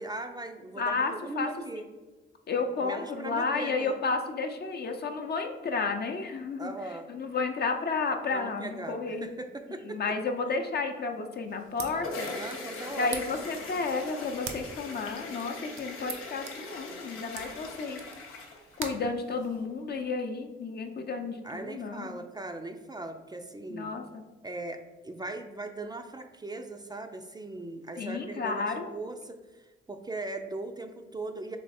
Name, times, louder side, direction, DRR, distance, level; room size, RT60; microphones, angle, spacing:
voice 1, 0.0-1.9 2.8-4.0 6.6-7.1 8.3-10.0 12.3-13.1 21.4-23.9 24.4-31.6, right 2 dB, 20° right, 5 dB, 0.4 m, -39 dB
voice 2, 0.8-1.5 2.5-9.3 9.8-12.3 12.9-18.0 18.8-22.2 23.7-24.2 28.0-28.9, left 4 dB, 50° left, 5 dB, 0.6 m, -32 dB
sound 1, 11.4-20.0, right 6 dB, 75° right, 0.6 m, -45 dB
sound 2, 11.6-19.0, left 3 dB, 90° left, 0.8 m, -41 dB
3.5 x 3.1 x 4.2 m, 1.2 s
supercardioid pair, 60°, 21 cm